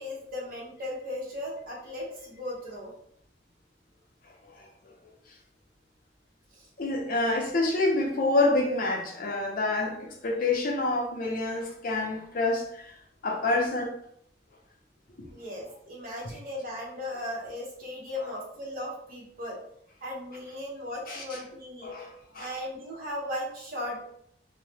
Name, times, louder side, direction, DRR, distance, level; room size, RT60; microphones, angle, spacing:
voice 1, 0.0-2.9 6.5-6.7 15.3-19.6 20.0-21.9 22.4-24.1, left 1 dB, 50° right, 1.0 m, -37 dB
voice 2, 6.8-12.9 13.2-13.9 15.2-15.3 21.1-21.4 21.8-22.5, left 2 dB, 50° left, 0.6 m, -27 dB
2.7 x 2.1 x 3.3 m
head